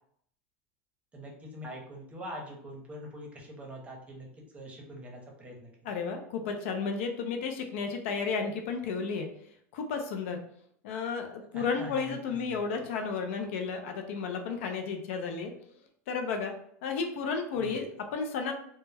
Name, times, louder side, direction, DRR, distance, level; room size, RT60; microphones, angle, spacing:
voice 1, 1.1-4.3 4.5-5.9 11.5-12.6 17.6-17.8, equal, 20° right, 0 dB, 0.7 m, -44 dB
voice 2, 5.8-9.3 9.7-10.4 10.8-15.5 16.1-16.5 16.8-18.5, left 5 dB, 75° left, 4 dB, 0.5 m, -33 dB
2.2 x 2.1 x 3.2 m, 0.67 s
supercardioid pair, 125°, 7 cm